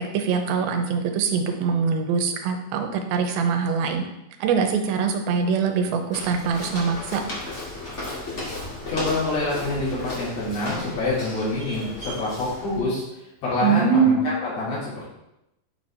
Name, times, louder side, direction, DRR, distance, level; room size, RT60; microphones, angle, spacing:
voice 1, 0.0-4.1 4.4-7.2 13.6-14.3, right 6 dB, 85° right, 5 dB, 2.6 m, -23 dB
Walk footsteps, 6.1-12.8, left 1 dB, 45° left, 0.9 m, -35 dB
voice 2, 8.9-13.0 13.4-15.1, left 2 dB, 75° left, -9 dB, 4.9 m, -26 dB
9.1 x 4.5 x 4.4 m, 0.89 s
omnidirectional pair, 4.3 m